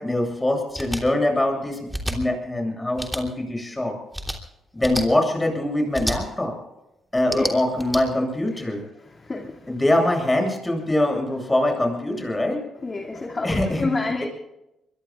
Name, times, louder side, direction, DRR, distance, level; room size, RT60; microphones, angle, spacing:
voice 1, 0.0-4.0 4.7-6.5 7.1-8.8 9.7-12.6 13.4-14.2, left 1 dB, 15° left, 2 dB, 7.9 m, -23 dB
sound 1, 0.7-1.0 1.9-2.2 3.0-3.2 4.1-4.4 4.8-5.0 5.9-6.2 7.2-8.0, equal, ahead, 3.2 m, -29 dB
voice 2, 9.2-9.6 12.8-14.2, left 3 dB, 30° left, 1 dB, 2.4 m, -28 dB
24.5 x 22.5 x 2.5 m, 0.88 s
cardioid pair, 90°, 0 cm